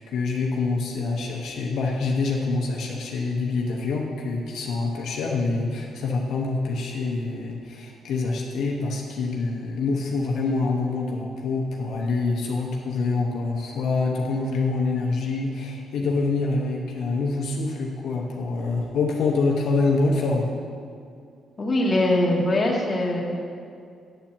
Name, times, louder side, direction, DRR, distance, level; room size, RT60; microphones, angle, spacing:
voice 1, 0.0-20.5, left 3 dB, 75° left, -1 dB, 0.9 m, -26 dB
voice 2, 21.6-23.2, left 1 dB, 25° left, -2 dB, 1.6 m, -22 dB
9.1 x 4.4 x 7.3 m, 2.3 s
cardioid pair, 90°, 0 cm